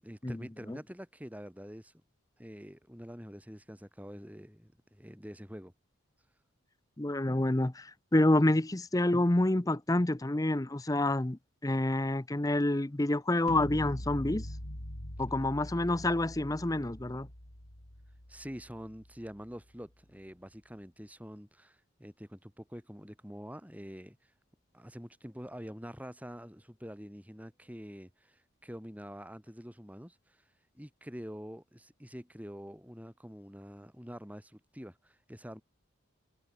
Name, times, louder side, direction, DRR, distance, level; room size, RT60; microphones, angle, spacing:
voice 1, 0.0-1.9 2.4-5.7 18.3-24.3 24.7-30.4 30.7-35.6, equal, 5° right, 6.5 m, -46 dB
voice 2, 7.0-14.5 15.2-17.3, left 1 dB, 15° left, 0.6 m, -28 dB
sound 1, 13.5-19.5, equal, 85° left, 5.5 m, -43 dB
head